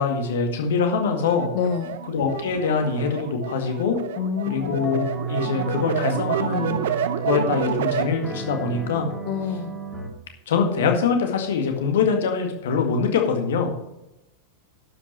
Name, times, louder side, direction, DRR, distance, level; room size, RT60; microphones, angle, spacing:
voice 1, 0.0-1.5 2.1-4.0 4.5-6.8 7.2-9.1 10.5-13.7, left 5 dB, 60° left, 4 dB, 2.0 m, -23 dB
sound 1, 1.1-8.1, right 9 dB, 55° right, 0.9 m, -29 dB
voice 2, 1.5-2.0 4.2-4.8 9.3-9.7, left 7 dB, 40° left, 7 dB, 0.8 m, -27 dB
sound 2, 4.6-10.1, right 3 dB, 15° left, 2.3 m, -33 dB
12.0 x 5.8 x 6.3 m, 0.90 s
figure-of-eight pair, 90°, 0 cm